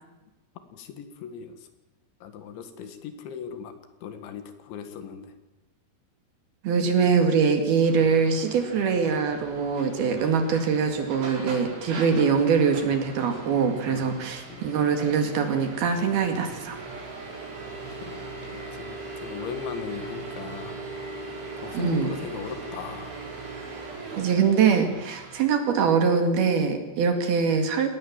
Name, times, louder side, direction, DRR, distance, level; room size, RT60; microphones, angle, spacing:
voice 1, 0.7-1.6 2.2-3.7 4.0-5.3 13.9-14.2 14.5-14.7 18.0-20.8 21.6-23.2, left 7 dB, 75° left, 9 dB, 4.1 m, -38 dB
voice 2, 6.6-16.8 21.7-22.1 24.2-27.9, right 6 dB, 60° right, 6 dB, 3.9 m, -23 dB
sound 1, 7.8-25.5, right 3 dB, 80° right, 7.7 m, -39 dB
26.5 x 19.0 x 7.4 m, 1.1 s
omnidirectional pair, 5.4 m